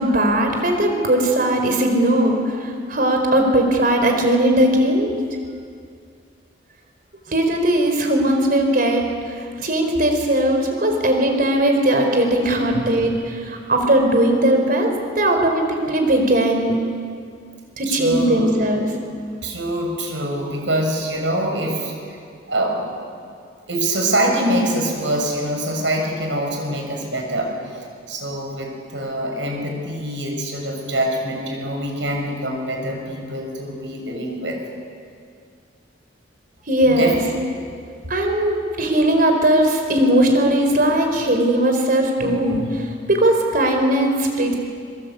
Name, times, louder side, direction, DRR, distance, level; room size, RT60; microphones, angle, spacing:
voice 1, 0.0-5.1 7.3-16.8 17.8-18.9 36.7-37.2 38.1-44.6, right 1 dB, 50° right, 4 dB, 4.6 m, -19 dB
voice 2, 17.9-18.5 19.4-21.9 22.5-23.0 23.7-34.7 36.8-37.2 37.5-37.6 42.2-42.7, right 1 dB, 75° right, 2 dB, 6.6 m, -25 dB
25.0 x 23.5 x 8.4 m, 2.2 s
head